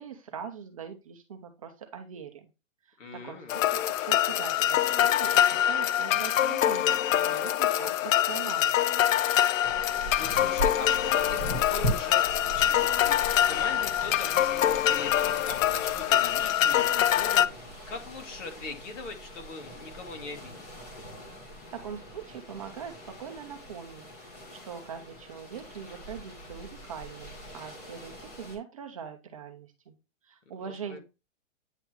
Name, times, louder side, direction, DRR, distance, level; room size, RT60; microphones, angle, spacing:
voice 1, 0.0-2.5 2.8-3.0 3.2-8.8 21.7-29.9 30.2-31.0, right 7 dB, 30° right, 5 dB, 0.5 m, -42 dB
voice 2, 3.0-3.6 10.2-20.7 30.6-31.0, left 3 dB, 70° left, 3 dB, 2.2 m, -41 dB
sound 1, 3.5-17.5, left 11 dB, 90° left, 0.5 m, -25 dB
sound 2, 9.6-28.6, right 1 dB, 30° left, 1.9 m, -40 dB
9.0 x 3.6 x 3.0 m, 0.27 s
hypercardioid pair, 180°, 38 cm